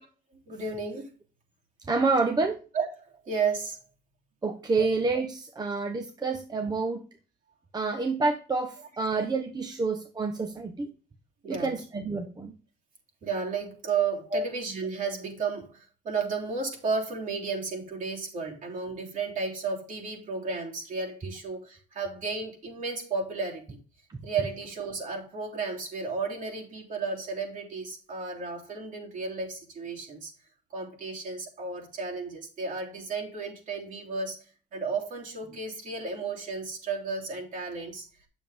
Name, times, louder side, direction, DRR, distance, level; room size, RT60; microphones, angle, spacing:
voice 1, 0.5-1.1 2.7-3.8 4.8-4.9 11.4-11.8 13.2-23.8 24.2-30.3 30.7-34.4 34.7-38.0, right 4 dB, 50° right, 3.2 m, -33 dB
voice 2, 1.9-2.6 4.4-7.0 7.7-10.9 11.5-12.5 14.3-14.4, right 3 dB, 25° right, 1.1 m, -28 dB
8.4 x 7.1 x 3.6 m
cardioid pair, 110°, 17 cm